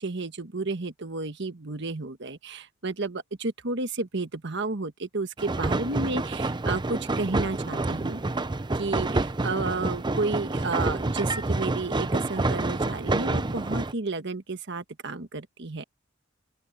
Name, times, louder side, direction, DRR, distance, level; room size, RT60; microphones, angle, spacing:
voice 1, 0.0-8.2 8.7-15.8, right 3 dB, 60° right, 1.4 m, -32 dB
sound 1, 5.4-13.9, right 2 dB, 20° right, 0.6 m, -28 dB
open air
head